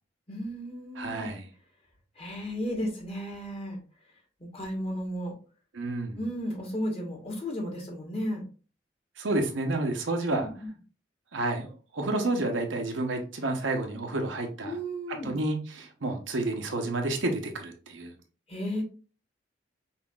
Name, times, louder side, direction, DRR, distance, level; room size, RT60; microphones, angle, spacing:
voice 1, 0.3-1.3 2.2-3.8 4.4-5.3 6.2-8.4 10.3-10.7 14.6-15.3 18.5-18.8, equal, 30° left, 0 dB, 1.2 m, -34 dB
voice 2, 1.0-1.5 5.7-6.2 9.2-10.5 11.3-14.8 15.1-18.1, right 2 dB, 85° right, 3 dB, 0.8 m, -30 dB
5.5 x 2.5 x 2.3 m, 0.37 s
head